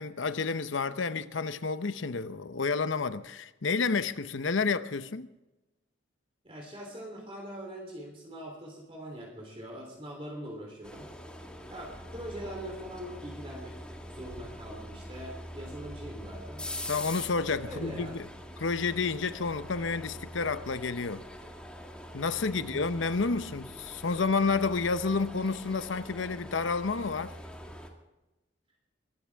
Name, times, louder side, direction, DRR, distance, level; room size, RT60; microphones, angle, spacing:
voice 1, 0.0-5.3 16.9-18.3 18.6-21.2 22.1-27.3, left 4 dB, 80° left, 0.8 m, -30 dB
voice 2, 6.4-11.1 11.7-16.6 17.6-18.2 22.5-22.9, equal, 30° right, 3.4 m, -42 dB
sound 1, 10.8-27.9, equal, 5° left, 1.8 m, -44 dB
22.0 x 13.5 x 3.5 m
head